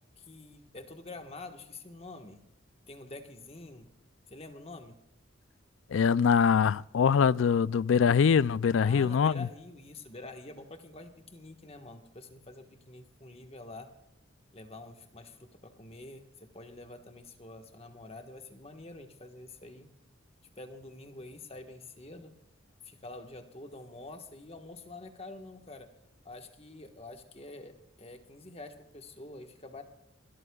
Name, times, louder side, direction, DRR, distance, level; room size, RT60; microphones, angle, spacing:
voice 1, 0.1-2.4 2.9-3.9 4.3-5.0 8.8-13.9 14.5-19.9 20.6-22.3 22.8-25.9 26.2-29.8, left 2 dB, 30° left, 1.4 m, -47 dB
voice 2, 5.9-9.5, left 6 dB, 80° left, 0.4 m, -23 dB
26.5 x 13.0 x 2.3 m
head